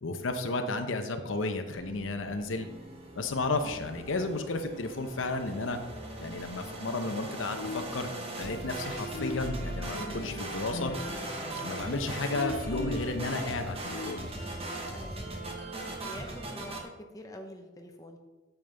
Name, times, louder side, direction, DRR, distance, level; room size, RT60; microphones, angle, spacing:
voice 1, 0.0-2.7 3.2-5.8 6.2-8.1 8.4-10.9 11.6-14.3, left 2 dB, 90° left, 6 dB, 0.8 m, -33 dB
sound 1, 1.7-16.8, right 1 dB, 30° right, 1.1 m, -39 dB
sound 2, 7.5-8.9 9.1-14.4, left 2 dB, 60° left, 0.7 m, -41 dB
voice 2, 14.9-15.4 16.0-18.2, equal, 20° left, 2 dB, 0.9 m, -46 dB
8.8 x 7.1 x 3.5 m, 1.1 s
head